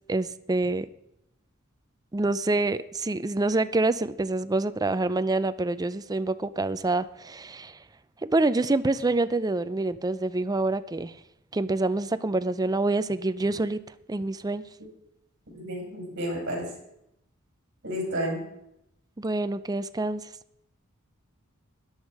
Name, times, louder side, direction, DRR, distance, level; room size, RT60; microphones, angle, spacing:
voice 1, 0.1-0.9 2.1-7.8 8.2-11.1 11.5-13.8 14.1-14.6 19.2-20.3, right 2 dB, 20° right, 13 dB, 0.5 m, -26 dB
voice 2, 15.5-16.7 17.8-18.4, equal, 55° right, 0 dB, 5.4 m, -31 dB
13.5 x 10.0 x 4.8 m, 0.80 s
head